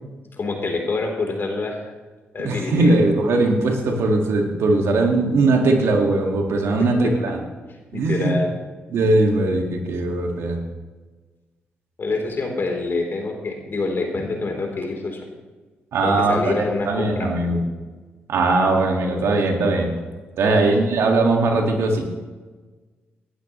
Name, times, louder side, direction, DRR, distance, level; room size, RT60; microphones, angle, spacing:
voice 1, 0.4-1.8 2.3-3.0 6.8-7.3 7.9-8.5 12.0-15.2 16.0-17.3 20.4-20.7, left 3 dB, 50° left, 2 dB, 3.7 m, -26 dB
voice 2, 2.4-7.4 7.9-8.3 8.9-10.6 15.9-16.5 16.8-17.6 18.3-19.9 20.4-22.0, right 2 dB, 75° right, 2 dB, 2.1 m, -19 dB
18.5 x 12.0 x 3.2 m, 1.3 s
supercardioid pair, 50°, 5 cm